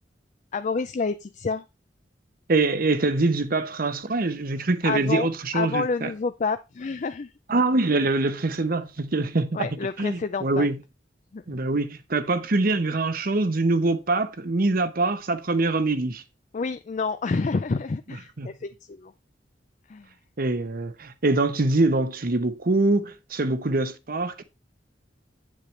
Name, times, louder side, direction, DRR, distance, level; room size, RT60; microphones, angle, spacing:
voice 1, 0.5-1.6 4.8-7.3 9.5-10.7 11.3-11.6 16.5-19.1 19.9-20.1, left 4 dB, 40° left, 0.4 m, -29 dB
voice 2, 2.5-6.1 7.5-9.7 10.0-10.8 11.5-16.2 18.4-18.5 20.4-24.4, right 2 dB, 50° right, 0.9 m, -24 dB
8.4 x 7.5 x 3.2 m
head